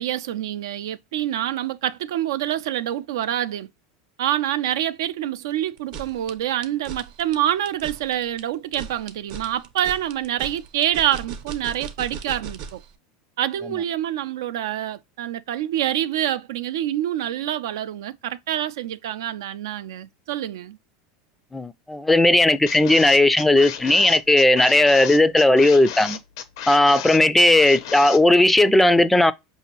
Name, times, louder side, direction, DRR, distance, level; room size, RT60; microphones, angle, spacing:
voice 1, 0.0-3.7 4.2-12.8 13.4-20.8, right 12 dB, 80° right, 0.4 m, -26 dB
sound 1, 5.8-12.9, right 6 dB, 60° right, 0.8 m, -37 dB
voice 2, 21.5-26.2 26.7-29.3, left 1 dB, 5° left, 0.3 m, -16 dB
sound 2, 22.7-28.2, left 9 dB, 75° left, 0.6 m, -34 dB
5.1 x 2.7 x 2.8 m
supercardioid pair, 115°, 2 cm